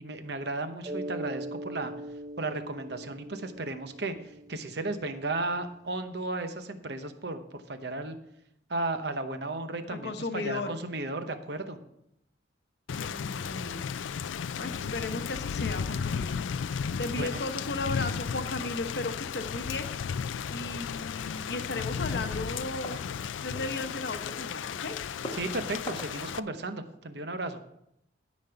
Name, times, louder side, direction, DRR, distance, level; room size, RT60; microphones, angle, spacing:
voice 1, 0.0-1.9 2.4-4.1 4.5-8.2 8.7-11.8 17.1-17.4 25.3-27.6, right 2 dB, 60° right, 8 dB, 0.9 m, -34 dB
Mallet percussion, 0.8-5.3, right 1 dB, 20° right, 0.3 m, -41 dB
voice 2, 9.9-10.8 12.9-13.8 14.6-16.4 17.0-19.9 20.5-23.0 23.4-25.0, left 2 dB, 60° left, 8 dB, 0.9 m, -35 dB
Thunder / Rain, 12.9-26.4, left 6 dB, 80° left, 0.4 m, -34 dB
sound 1, 20.5-26.2, left 1 dB, 25° left, 1.1 m, -47 dB
13.0 x 5.2 x 5.8 m, 0.79 s
head